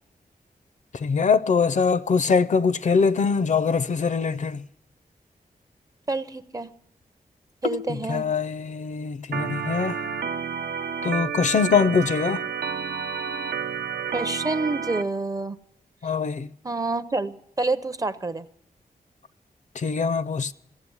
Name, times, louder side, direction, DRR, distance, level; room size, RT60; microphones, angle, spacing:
voice 1, 1.0-4.6 7.6-7.8 8.1-10.0 11.0-12.4 16.0-16.5 19.8-20.5, left 5 dB, 50° left, 0.5 m, -23 dB
voice 2, 6.1-6.7 7.6-8.3 14.1-15.6 16.6-18.5, right 3 dB, 25° right, 0.5 m, -28 dB
Organ, 9.3-15.0, right 6 dB, 85° right, 0.7 m, -30 dB
16.0 x 7.5 x 9.7 m
wide cardioid pair, 160°, 15 cm